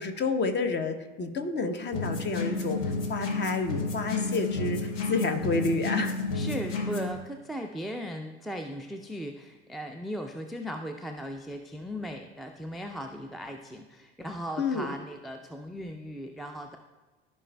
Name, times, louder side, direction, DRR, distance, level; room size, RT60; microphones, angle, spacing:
voice 1, 0.0-2.8 3.1-6.2 14.6-14.9, left 3 dB, 30° left, 7 dB, 0.9 m, -29 dB
sound 1, 1.9-7.2, left 3 dB, 50° left, 1.2 m, -31 dB
voice 2, 6.3-16.8, equal, ahead, 5 dB, 0.4 m, -37 dB
14.0 x 5.4 x 2.2 m, 1.2 s
figure-of-eight pair, 65°, 35 cm